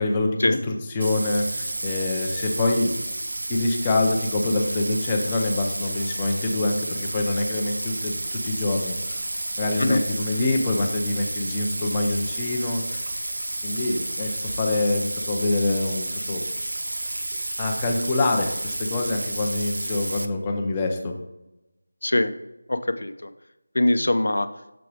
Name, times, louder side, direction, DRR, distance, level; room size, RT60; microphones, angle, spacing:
voice 1, 0.0-2.9 3.5-9.2 9.6-12.8 13.6-16.4 17.6-21.2, left 2 dB, 10° left, 2 dB, 0.4 m, -25 dB
Bathtub (filling or washing), 1.0-20.3, right 1 dB, 65° right, 0.6 m, -31 dB
voice 2, 22.0-22.3 22.7-23.3 23.7-24.5, left 1 dB, 65° left, 10 dB, 0.6 m, -22 dB
6.9 x 4.8 x 4.7 m, 0.93 s
figure-of-eight pair, 180°, 0 cm